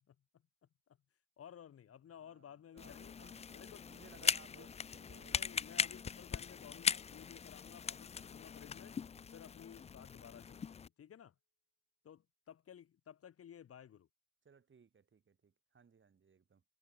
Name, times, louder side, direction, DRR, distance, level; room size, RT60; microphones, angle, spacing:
voice 1, 1.4-3.1 3.5-3.9 4.2-4.7 5.3-9.0 9.3-11.3 12.0-14.1, left 9 dB, 50° left, 1.1 m, -55 dB
voice 2, 2.2-5.5 14.4-16.6, right 6 dB, 40° right, 6.1 m, -63 dB
sound 1, 2.8-10.9, left 6 dB, 20° left, 0.3 m, -40 dB
sound 2, 8.2-10.6, left 13 dB, 80° left, 6.2 m, -74 dB
cardioid pair, 90°, 30 cm